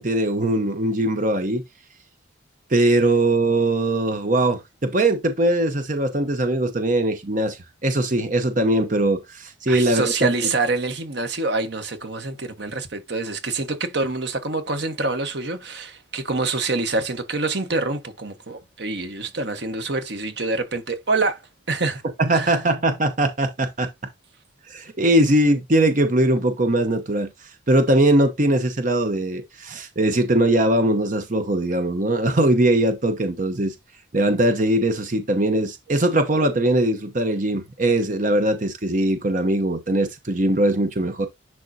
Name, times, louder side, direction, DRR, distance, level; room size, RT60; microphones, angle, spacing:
voice 1, 0.0-1.6 2.7-10.3 22.2-23.9 24.7-27.3 27.7-33.7 34.1-41.3, right 1 dB, 40° right, 0.9 m, -21 dB
voice 2, 9.7-21.4 21.7-22.0 22.3-22.6, right 3 dB, 60° right, 1.2 m, -26 dB
10.5 x 3.7 x 2.7 m
head